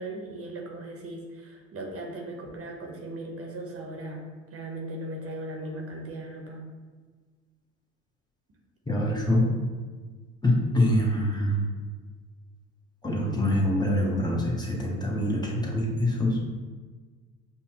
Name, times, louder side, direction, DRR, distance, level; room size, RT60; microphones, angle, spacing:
voice 1, 0.0-4.2 4.5-6.6, right 1 dB, 45° right, 1 dB, 0.9 m, -38 dB
voice 2, 8.9-9.4 10.4-11.7 13.0-16.4, left 1 dB, 15° left, -2 dB, 0.9 m, -25 dB
5.3 x 2.2 x 2.9 m, 1.4 s
supercardioid pair, 70°, 33 cm